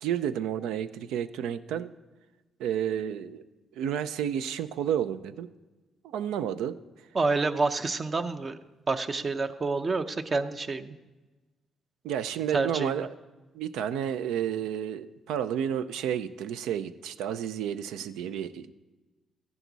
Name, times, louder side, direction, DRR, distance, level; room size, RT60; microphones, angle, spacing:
voice 1, 0.0-1.9 2.6-3.4 3.8-5.5 6.0-6.8 12.0-13.1 13.5-18.7, right 9 dB, 90° right, 13 dB, 0.5 m, -31 dB
voice 2, 7.1-8.6 8.9-11.0 12.5-13.1, right 3 dB, 35° right, 10 dB, 0.7 m, -28 dB
14.0 x 10.5 x 4.0 m, 1.2 s
cardioid pair, 90°, 0 cm